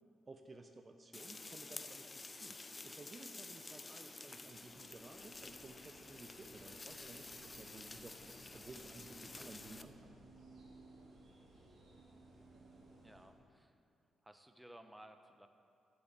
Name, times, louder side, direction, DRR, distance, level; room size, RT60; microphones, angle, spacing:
voice 1, 0.3-10.3, right 3 dB, 35° right, 6 dB, 0.7 m, -56 dB
sound 1, 1.1-9.8, left 3 dB, 30° left, 0.6 m, -51 dB
sound 2, 4.3-13.3, right 2 dB, 70° right, 2.5 m, -61 dB
voice 2, 13.0-13.8 14.2-15.5, right 1 dB, 10° right, 7 dB, 0.8 m, -58 dB
7.8 x 7.1 x 7.9 m, 2.4 s
supercardioid pair, 55°, 0 cm